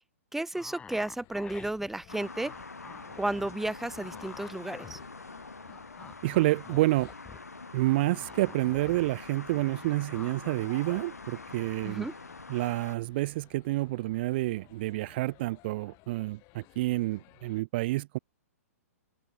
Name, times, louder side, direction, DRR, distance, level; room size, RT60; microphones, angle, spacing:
voice 1, 0.3-2.5 3.2-5.0 11.8-12.1, right 1 dB, 5° right, 1.1 m, -33 dB
sound 1, 0.5-5.4 5.7-9.1 9.4-10.5 10.9-11.0, left 6 dB, 15° left, 1.9 m, -49 dB
sound 2, 0.9-17.6, left 26 dB, 35° left, 5.0 m, -59 dB
sound 3, 2.1-13.0, left 3 dB, 90° left, 0.9 m, -45 dB
voice 2, 6.2-7.1 7.7-12.1 12.5-18.2, right 18 dB, 45° right, 0.5 m, -29 dB
figure-of-eight pair, 115°, 8 cm